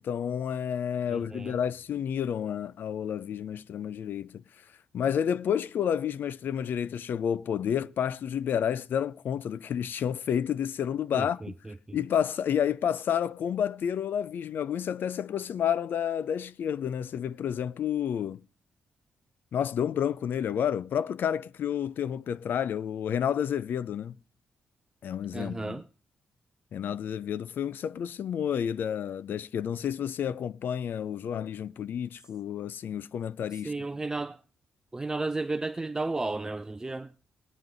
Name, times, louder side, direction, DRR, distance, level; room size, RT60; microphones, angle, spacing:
voice 1, 0.0-4.4 4.9-11.5 11.9-18.4 19.5-24.2 25.0-25.8 26.7-33.7, left 8 dB, 70° left, 0.5 m, -30 dB
voice 2, 1.1-1.6 11.1-12.0 25.3-25.8 33.5-34.4 34.9-37.1, right 3 dB, 15° right, 0.5 m, -33 dB
19.5 x 9.3 x 3.8 m
cardioid pair, 100°, 4 cm